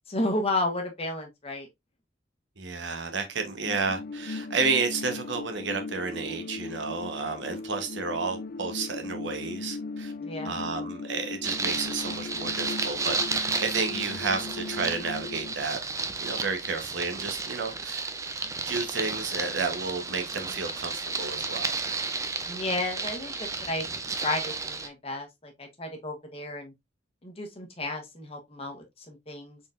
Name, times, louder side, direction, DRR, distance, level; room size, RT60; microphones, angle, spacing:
voice 1, 0.1-1.7 10.2-10.6 22.5-23.9 24.2-26.7 27.2-29.6, left 2 dB, 30° left, 0.9 m, -32 dB
voice 2, 2.6-10.1 10.4-15.8 16.2-18.1 18.4-21.7, right 4 dB, 65° right, 0.9 m, -31 dB
sound 1, 3.7-15.5, left 3 dB, 50° left, 0.4 m, -38 dB
sound 2, 11.4-24.9, right 4 dB, 15° right, 0.4 m, -33 dB
4.3 x 3.8 x 2.4 m
head